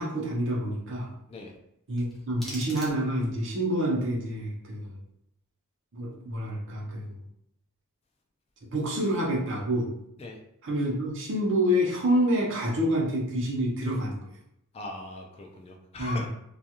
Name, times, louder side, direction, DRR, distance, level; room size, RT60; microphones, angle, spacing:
voice 1, 0.0-1.1 1.9-4.9 5.9-7.1 8.7-9.9 10.6-14.2 16.0-16.2, equal, 55° right, -2 dB, 0.7 m, -27 dB
sound 1, 2.0-3.4, equal, ahead, 0.7 m, -44 dB
voice 2, 14.7-16.3, left 2 dB, 25° left, 0 dB, 0.3 m, -39 dB
2.3 x 2.3 x 2.8 m, 0.78 s
head